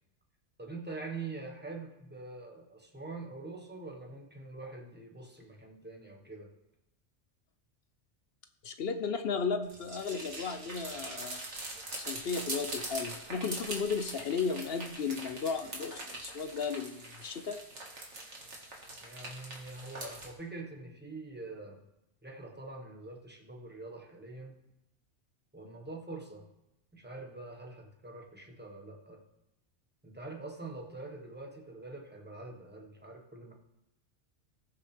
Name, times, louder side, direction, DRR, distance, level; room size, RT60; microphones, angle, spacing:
voice 1, 0.6-6.5 19.0-21.8 22.2-24.6 25.5-26.4 26.9-29.2 30.0-33.5, right 3 dB, 10° right, 1 dB, 1.2 m, -44 dB
voice 2, 8.6-11.4 12.0-17.6, left 5 dB, 60° left, 8 dB, 0.9 m, -34 dB
sound 1, 9.6-20.3, right 2 dB, 90° right, 2.0 m, -42 dB
18.0 x 6.9 x 3.3 m, 0.91 s
omnidirectional pair, 1.2 m